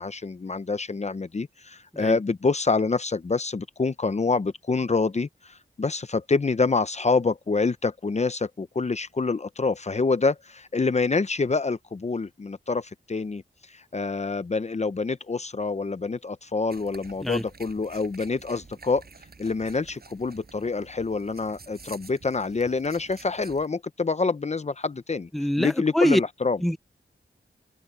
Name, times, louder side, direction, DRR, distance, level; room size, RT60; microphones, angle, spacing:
voice 1, 0.0-13.4 13.7-19.0 19.4-25.3 25.6-26.6, left 4 dB, 35° left, 0.7 m, -26 dB
sound 1, 16.7-23.7, right 4 dB, 55° right, 6.8 m, -49 dB
voice 2, 25.3-26.2 26.6-26.8, equal, ahead, 0.7 m, -23 dB
wide cardioid pair, 90°, 19 cm